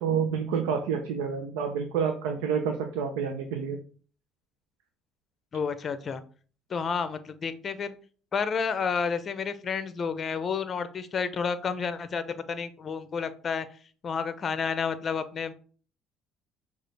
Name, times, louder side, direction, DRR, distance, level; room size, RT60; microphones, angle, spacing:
voice 1, 0.0-3.8, right 6 dB, 85° right, 5 dB, 0.6 m, -28 dB
voice 2, 5.5-6.2 6.7-7.9 8.3-13.7 14.0-15.5, left 6 dB, 40° left, 12 dB, 0.6 m, -30 dB
6.1 x 2.5 x 3.3 m, 0.41 s
supercardioid pair, 90°, 0 cm